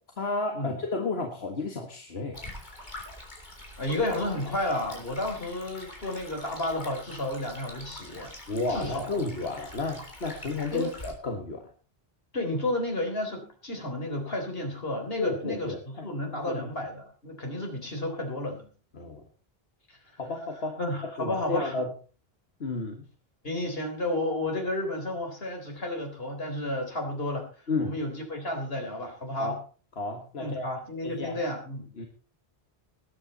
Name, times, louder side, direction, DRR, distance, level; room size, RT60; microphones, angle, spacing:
voice 1, 0.2-2.4 8.5-11.7 15.2-16.1 16.4-16.7 18.9-19.2 20.2-21.9 22.6-23.0 27.7-28.0 29.4-29.6 30.0-30.7 31.0-31.4 32.0-32.1, left 3 dB, 90° left, 3 dB, 1.9 m, -32 dB
Stream, 2.3-11.1, left 1 dB, 50° left, 3.8 m, -45 dB
voice 2, 3.8-8.4 8.7-9.1 10.7-10.9 12.3-18.7 19.9-20.0 20.8-21.7 23.4-27.5 27.8-29.6 30.4-31.9, left 1 dB, 70° left, 3 dB, 4.0 m, -32 dB
20.0 x 8.9 x 4.1 m, 0.37 s
omnidirectional pair, 1.0 m